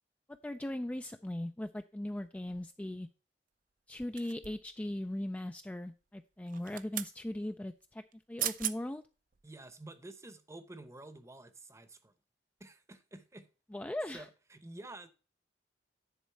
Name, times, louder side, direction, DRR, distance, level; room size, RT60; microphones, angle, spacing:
voice 1, 0.4-3.1 3.9-9.0 13.7-14.3, left 1 dB, 10° left, 0.3 m, -39 dB
sound 1, 4.2-4.7 6.5-7.1 8.1-8.2 8.4-8.8 9.3-9.5, right 12 dB, 50° right, 0.5 m, -37 dB
voice 2, 9.4-12.1 12.6-13.5 14.1-15.1, right 2 dB, 15° right, 0.8 m, -50 dB
10.5 x 4.2 x 5.5 m
head